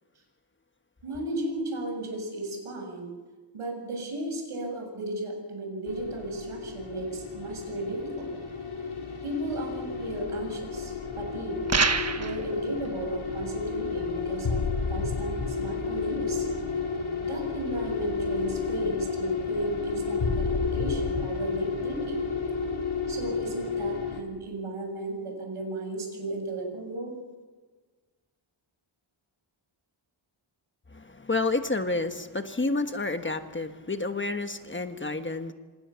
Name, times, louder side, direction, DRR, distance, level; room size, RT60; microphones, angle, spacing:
voice 1, 1.0-3.1 3.5-8.3 9.2-11.6 12.2-16.5 17.2-22.2 23.1-27.1, right 1 dB, 85° right, 3 dB, 7.5 m, -34 dB
sound 1, 5.9-24.2, left 5 dB, 75° left, 4.0 m, -31 dB
sound 2, 11.7-12.4, right 4 dB, 30° right, 1.3 m, -24 dB
voice 2, 30.9-35.5, left 3 dB, 25° left, 7 dB, 1.4 m, -30 dB
27.5 x 26.5 x 7.1 m, 1.4 s
wide cardioid pair, 165°, 50 cm